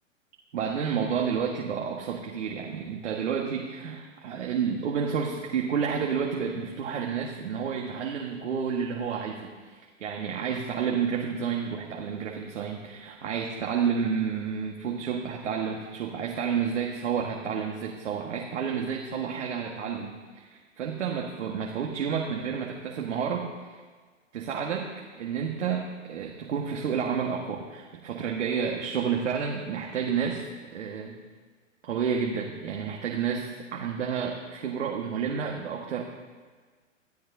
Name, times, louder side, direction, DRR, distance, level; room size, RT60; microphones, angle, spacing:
voice 1, 0.5-23.5 24.3-31.2 31.8-36.0, right 7 dB, 65° right, 0 dB, 1.7 m, -30 dB
23.0 x 13.5 x 2.8 m, 1.5 s
figure-of-eight pair, 110°, 38 cm